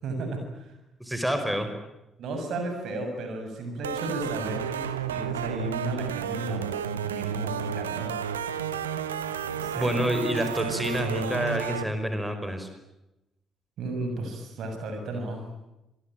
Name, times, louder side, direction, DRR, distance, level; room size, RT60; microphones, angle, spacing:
voice 1, 0.0-0.7 2.2-8.1 9.5-10.1 13.8-15.5, right 2 dB, 55° right, 5 dB, 7.1 m, -34 dB
voice 2, 1.0-1.7 9.8-12.7, equal, 5° right, 7 dB, 5.3 m, -28 dB
sound 1, 3.8-11.8, right 8 dB, 80° right, 1.2 m, -32 dB
27.0 x 22.5 x 9.2 m, 0.94 s
figure-of-eight pair, 45°, 0 cm